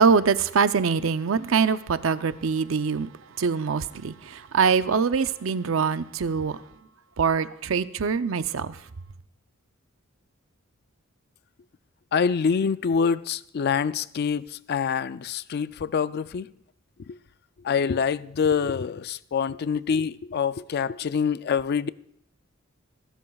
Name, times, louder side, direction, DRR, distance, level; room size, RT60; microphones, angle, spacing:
voice 1, 0.0-3.1 3.4-6.6 7.2-8.8, right 5 dB, 80° right, 0.6 m, -23 dB
voice 2, 12.1-16.5 17.1-17.2 17.6-21.9, left 6 dB, 50° left, 0.4 m, -25 dB
25.0 x 12.5 x 2.3 m
head